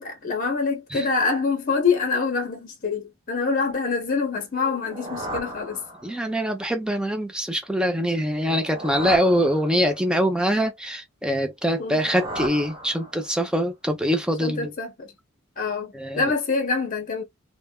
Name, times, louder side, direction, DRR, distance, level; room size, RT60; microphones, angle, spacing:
voice 1, 0.0-5.8 11.8-12.1 14.4-15.1 15.6-17.2, left 4 dB, 40° left, 0.9 m, -25 dB
Short Rise, 4.6-6.4 8.3-10.2 11.6-13.5, equal, 25° right, 0.9 m, -36 dB
voice 2, 6.0-14.7 15.9-16.2, equal, 5° right, 0.6 m, -24 dB
3.3 x 2.1 x 2.2 m
head